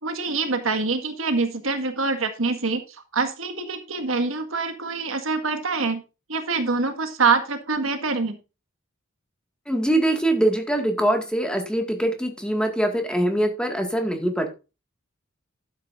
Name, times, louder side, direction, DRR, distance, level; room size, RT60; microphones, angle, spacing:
voice 1, 0.0-2.8 3.1-6.0 6.3-8.4, right 4 dB, 75° right, 7 dB, 1.8 m, -25 dB
voice 2, 9.7-14.5, right 1 dB, 5° left, 4 dB, 1.9 m, -23 dB
12.0 x 8.9 x 2.6 m, 0.29 s
head